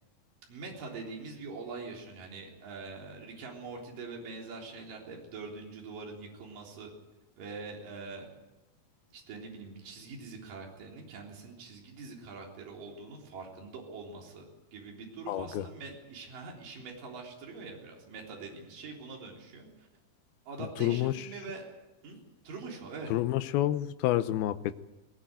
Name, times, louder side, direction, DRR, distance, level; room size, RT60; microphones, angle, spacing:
voice 1, 0.5-6.9 7.4-8.3 9.1-14.4 14.7-19.9 20.5-21.7 22.0-23.1, right 4 dB, 55° right, -1 dB, 5.1 m, -44 dB
voice 2, 15.3-15.7 20.8-21.3 23.1-24.8, left 14 dB, 75° left, 11 dB, 2.6 m, -29 dB
20.0 x 19.0 x 9.1 m, 1.0 s
omnidirectional pair, 4.7 m